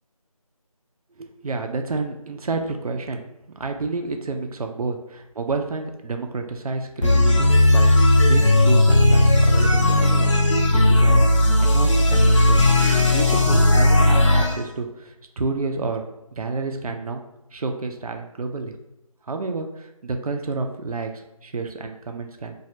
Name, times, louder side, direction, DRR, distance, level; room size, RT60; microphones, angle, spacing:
voice 1, 1.2-10.3 10.7-12.7 13.1-16.0 16.3-17.2 17.5-18.7 19.3-22.5, right 3 dB, 70° right, 5 dB, 0.4 m, -30 dB
sound 1, 7.0-14.6, left 1 dB, 50° left, 0.4 m, -16 dB
2.2 x 2.1 x 2.7 m, 0.92 s
figure-of-eight pair, 175°, 19 cm